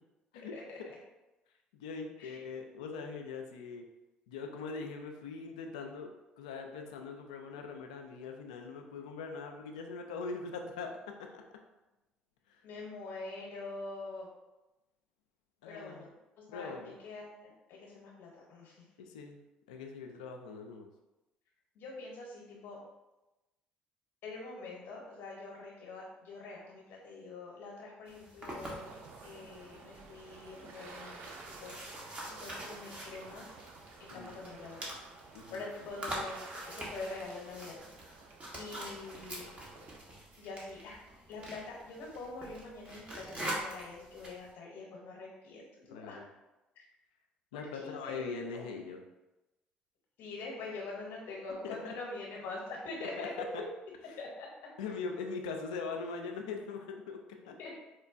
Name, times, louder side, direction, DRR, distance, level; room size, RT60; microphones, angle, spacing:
voice 1, 1.7-3.8 4.3-6.1 6.4-10.9 11.2-11.4 12.5-12.6 15.6-16.1 16.5-17.0 19.0-19.4 19.7-20.9 34.1-34.4 35.3-35.6 45.9-46.2 47.5-49.0 51.6-51.8 53.2-53.3 54.8-57.5, left 4 dB, 90° left, 3 dB, 0.3 m, -41 dB
voice 2, 12.6-14.3 15.6-18.9 21.7-22.8 24.2-28.8 29.2-33.5 34.1-35.0 35.3-37.8 38.5-39.5 40.4-46.2 46.7-46.8 47.5-48.8 50.2-53.3 54.2-54.5 57.6-57.7, left 3 dB, 70° left, -3 dB, 0.8 m, -45 dB
sound 1, 28.1-44.5, right 1 dB, 35° right, 1.0 m, -45 dB
sound 2, 28.7-40.0, right 4 dB, 65° right, 0.4 m, -52 dB
4.2 x 2.2 x 2.5 m, 1.0 s
hypercardioid pair, 60°, 4 cm